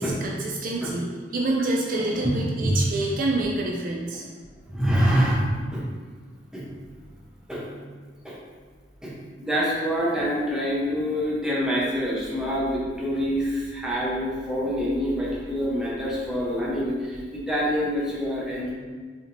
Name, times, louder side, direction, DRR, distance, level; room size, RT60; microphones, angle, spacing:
voice 1, 0.0-4.3, right 2 dB, 50° right, -1 dB, 0.4 m, -27 dB
voice 2, 4.7-5.4 5.7-5.8 6.5-6.7 7.5-7.7 8.2-8.4 9.0-9.1 9.4-18.7, equal, 5° right, -6 dB, 0.9 m, -26 dB
4.8 x 3.6 x 2.7 m, 1.5 s
head